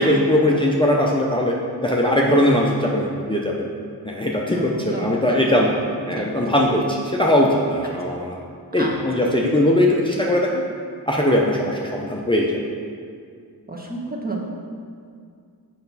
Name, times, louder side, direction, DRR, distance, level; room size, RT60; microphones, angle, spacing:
voice 1, 0.0-1.6 1.8-3.7 4.0-5.7 6.1-8.3 8.7-10.6 11.1-12.6, left 1 dB, 10° left, -2 dB, 0.7 m, -20 dB
voice 2, 4.5-6.6 7.8-8.2 8.8-9.6 13.7-14.4, right 2 dB, 20° right, -2 dB, 1.3 m, -33 dB
6.7 x 5.7 x 4.1 m, 2.2 s
wide cardioid pair, 50°, 41 cm